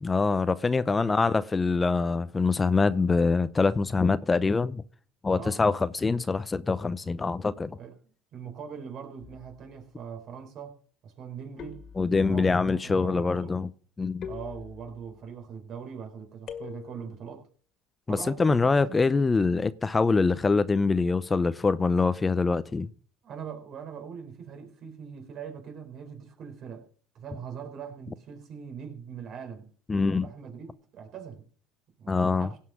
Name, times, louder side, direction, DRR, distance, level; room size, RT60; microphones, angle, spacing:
voice 1, 0.0-4.8 5.2-7.8 12.0-13.7 14.0-14.3 18.1-22.9 29.9-30.3 32.1-32.5, left 4 dB, 20° left, 0.6 m, -24 dB
voice 2, 5.3-5.6 7.8-7.9 8.3-10.8 11.0-11.8 12.2-13.5 14.3-17.5 18.1-19.0 23.2-26.9 27.1-29.7 30.2-31.5 32.0-32.6, right 7 dB, 55° right, 4.2 m, -41 dB
sound 1, 9.2-9.7 11.6-12.5 14.2-15.2 16.5-17.2, left 7 dB, 50° left, 2.0 m, -43 dB
17.0 x 5.7 x 6.3 m
supercardioid pair, 85°, 0 cm